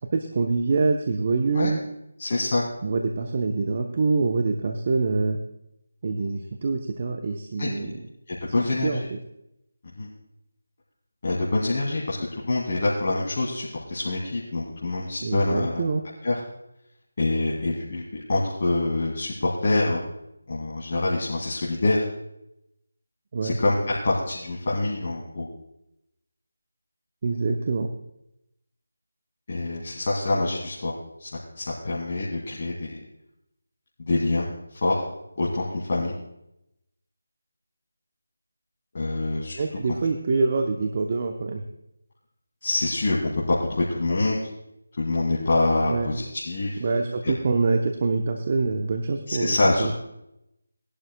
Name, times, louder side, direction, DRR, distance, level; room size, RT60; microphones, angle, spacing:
voice 1, 0.1-1.8 2.8-5.4 6.0-8.0 8.6-9.0 15.2-16.0 23.3-23.6 27.2-27.9 39.6-41.6 45.8-46.1 46.8-49.9, right 3 dB, 35° right, 4 dB, 0.8 m, -25 dB
voice 2, 2.2-2.6 7.6-7.7 8.3-9.1 10.0-10.1 11.2-15.8 16.2-16.4 17.2-20.0 20.5-22.0 23.4-25.5 29.5-30.9 31.2-31.3 31.6-33.0 34.0-35.0 35.4-36.1 38.9-39.6 42.6-43.2 43.5-44.4 45.0-46.8 47.2-47.3 49.3-49.9, left 2 dB, 45° left, -6 dB, 2.2 m, -25 dB
19.0 x 11.5 x 2.3 m, 0.85 s
figure-of-eight pair, 165°, 0 cm